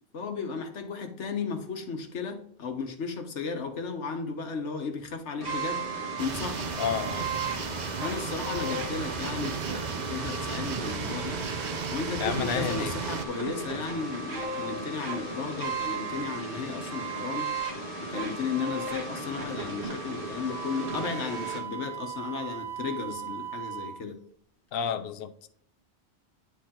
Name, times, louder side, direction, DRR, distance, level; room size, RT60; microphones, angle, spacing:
voice 1, 0.1-5.9 6.2-6.7 8.0-11.5 11.9-17.5 18.0-24.2, left 5 dB, 80° left, 6 dB, 1.4 m, -34 dB
sound 1, 5.4-21.6, right 3 dB, 65° right, 2.1 m, -35 dB
sound 2, 6.2-13.3, right 6 dB, 50° right, 0.6 m, -35 dB
voice 2, 6.8-7.3 8.7-8.8 12.2-12.9 24.7-25.5, left 8 dB, 60° left, 9 dB, 0.8 m, -31 dB
Wind instrument woodwind instrument, 20.5-24.0, right 10 dB, 10° left, 1.5 m, -38 dB
9.9 x 4.4 x 3.8 m, 0.62 s
omnidirectional pair, 1.2 m